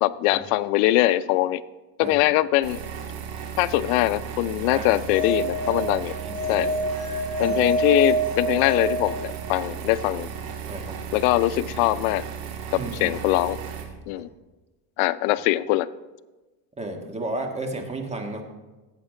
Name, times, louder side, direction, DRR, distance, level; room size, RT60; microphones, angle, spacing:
voice 1, 0.0-1.6 2.0-2.8 3.6-6.1 6.5-6.7 7.4-10.3 11.1-12.3 13.0-13.6 14.1-14.3 15.0-15.9, left 15 dB, 90° left, 16 dB, 0.6 m, -22 dB
sound 1, 2.6-13.8, right 7 dB, 60° right, 2.2 m, -35 dB
voice 2, 4.7-5.0 5.7-5.8 6.2-6.7 7.4-7.6 10.4-11.0 12.7-13.2 14.1-14.2 16.8-18.4, right 2 dB, 15° right, 3 dB, 1.5 m, -34 dB
sound 2, 4.9-9.7, equal, 40° left, 2.9 m, -27 dB
16.5 x 8.2 x 3.8 m, 1.2 s
cardioid pair, 130°, 39 cm